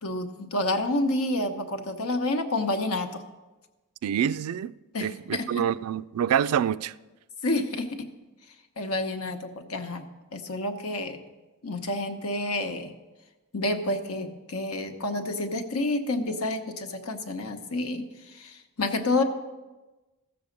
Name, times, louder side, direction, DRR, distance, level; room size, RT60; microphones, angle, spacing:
voice 1, 0.0-3.2 4.9-5.7 7.4-8.1 8.8-11.2 11.6-12.9 13.5-19.2, left 2 dB, 80° left, 1.0 m, -29 dB
voice 2, 4.0-4.7 5.0-6.9, right 9 dB, 85° right, 0.3 m, -26 dB
14.5 x 7.0 x 5.2 m
head